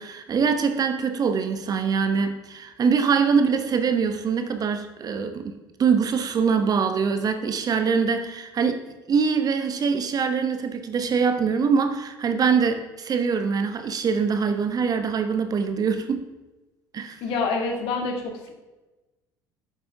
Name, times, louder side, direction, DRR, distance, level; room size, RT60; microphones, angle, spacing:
voice 1, 0.0-8.8 9.1-16.3 16.9-17.2, right 6 dB, 35° right, 8 dB, 1.1 m, -23 dB
voice 2, 17.2-18.5, left 4 dB, 55° left, 2 dB, 2.1 m, -27 dB
11.5 x 9.1 x 3.5 m, 1.1 s
figure-of-eight pair, 60°, 11 cm